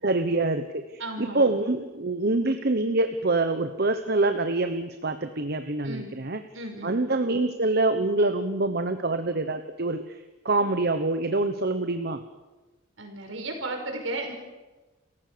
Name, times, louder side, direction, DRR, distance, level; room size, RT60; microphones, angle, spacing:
voice 1, 0.0-6.4 6.8-10.2 10.4-12.2, right 2 dB, 50° right, 8 dB, 1.1 m, -25 dB
voice 2, 1.0-1.5 5.8-6.1 6.5-6.9 13.0-14.3, right 2 dB, 70° right, 3 dB, 5.6 m, -34 dB
29.0 x 15.5 x 6.9 m, 1.2 s
head